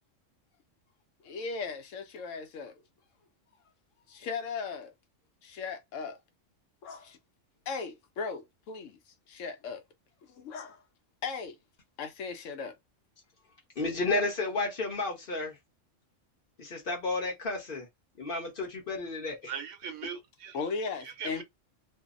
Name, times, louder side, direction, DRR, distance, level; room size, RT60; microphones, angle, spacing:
voice 1, 1.2-2.8 4.1-4.9 5.4-6.2 6.8-7.2 7.7-9.0 9.3-9.8 10.2-10.8 11.2-11.6 12.0-12.8 20.5-21.4, left 5 dB, 80° left, 1.0 m, -37 dB
voice 2, 13.8-15.6 16.6-17.9 18.2-19.5, left 3 dB, 50° left, 1.1 m, -32 dB
voice 3, 19.4-20.6 21.0-21.4, right 7 dB, 75° right, 1.0 m, -40 dB
2.6 x 2.0 x 2.4 m
omnidirectional pair, 1.3 m